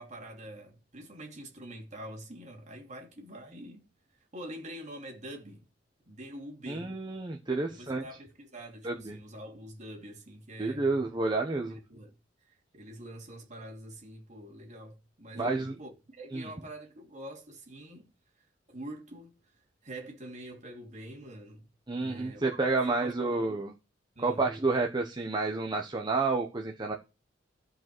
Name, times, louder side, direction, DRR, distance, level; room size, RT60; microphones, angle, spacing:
voice 1, 0.0-3.8 4.3-5.7 6.1-7.0 7.7-10.9 11.7-12.1 12.5-18.1 18.7-19.4 19.8-21.7 22.0-23.5 24.1-24.5, right 1 dB, 40° right, 2.8 m, -45 dB
voice 2, 6.7-8.0 8.8-9.2 10.6-11.8 15.3-15.7 16.3-16.5 21.9-23.7 24.2-26.9, right 3 dB, 25° right, 1.1 m, -30 dB
13.5 x 5.1 x 6.2 m
head